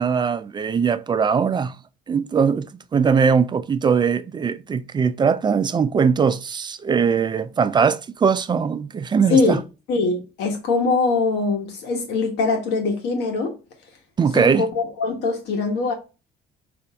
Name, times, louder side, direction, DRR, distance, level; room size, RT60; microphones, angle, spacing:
voice 1, 0.0-1.8 2.1-2.7 2.9-9.6 14.2-14.7, right 6 dB, 25° right, 0.4 m, -20 dB
voice 2, 9.3-9.6 9.9-13.6 14.3-15.9, left 4 dB, 85° left, 1.2 m, -22 dB
5.3 x 2.6 x 3.4 m
cardioid pair, 110°, 17 cm